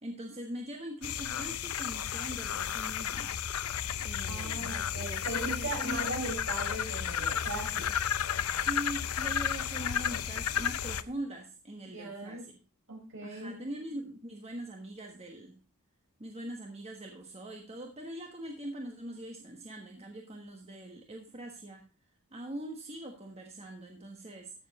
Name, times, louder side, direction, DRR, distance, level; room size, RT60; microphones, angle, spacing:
voice 1, 0.0-3.4 4.0-4.8 5.4-6.2 8.5-12.6 13.2-15.6 16.2-21.9 22.3-24.5, right 1 dB, 30° right, 1.4 m, -42 dB
sound 1, 1.0-11.0, left 9 dB, 90° left, 0.6 m, -33 dB
sound 2, 3.7-11.1, equal, 45° right, 7.3 m, -54 dB
voice 2, 4.3-7.9 11.9-12.5 12.9-13.6, right 2 dB, 65° right, 4.9 m, -39 dB
14.0 x 7.0 x 4.2 m
head